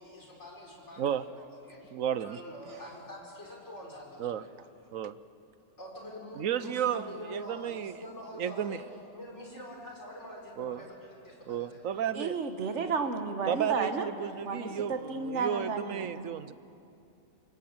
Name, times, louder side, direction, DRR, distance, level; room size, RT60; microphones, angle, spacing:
voice 1, 0.0-1.9 2.2-4.9 5.8-8.8 9.1-12.0 14.6-14.9, equal, 60° left, -1 dB, 5.6 m, -46 dB
voice 2, 1.9-2.4 4.2-4.4 4.9-5.1 6.4-7.9 8.4-8.8 10.6-10.8 11.5-12.4 13.5-16.5, right 9 dB, 80° right, 14 dB, 1.2 m, -33 dB
voice 3, 12.2-14.1 14.4-16.3, right 4 dB, 60° right, 7 dB, 1.8 m, -32 dB
27.5 x 24.0 x 8.9 m, 2.7 s
omnidirectional pair, 1.4 m